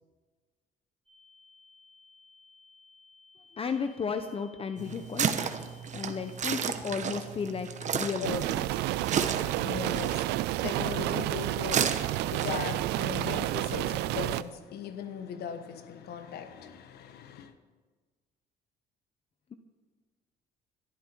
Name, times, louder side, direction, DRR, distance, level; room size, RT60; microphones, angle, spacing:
sound 1, 1.1-6.4, left 3 dB, 5° left, 4.7 m, -59 dB
voice 1, 3.5-5.4 5.9-8.9, left 6 dB, 35° left, 0.8 m, -34 dB
sound 2, 4.8-14.5, right 7 dB, 45° right, 1.2 m, -34 dB
voice 2, 7.9-8.4 9.0-17.5, left 7 dB, 70° left, 1.4 m, -39 dB
sound 3, 8.2-14.4, right 16 dB, 85° right, 0.5 m, -30 dB
21.5 x 12.5 x 4.6 m
cardioid pair, 110°, 17 cm